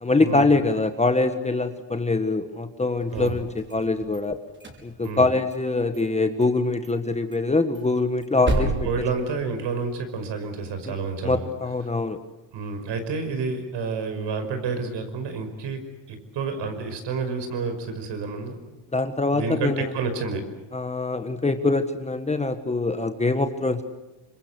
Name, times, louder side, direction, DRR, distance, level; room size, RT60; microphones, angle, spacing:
voice 1, 0.0-4.4 4.8-8.7 10.9-11.0 11.2-12.2 18.9-19.9 20.7-23.8, left 3 dB, 15° left, 8 dB, 1.5 m, -24 dB
sound 1, 3.0-4.2 4.5-5.7 5.9-6.0 6.4-6.6 6.8-6.9 7.3-9.9, right 1 dB, 20° right, 5.7 m, -32 dB
voice 2, 8.5-11.4 12.5-15.8 16.1-18.6 19.3-20.4, right 4 dB, 55° right, 8 dB, 5.6 m, -29 dB
26.0 x 22.5 x 8.1 m, 1.0 s
supercardioid pair, 105°, 50 cm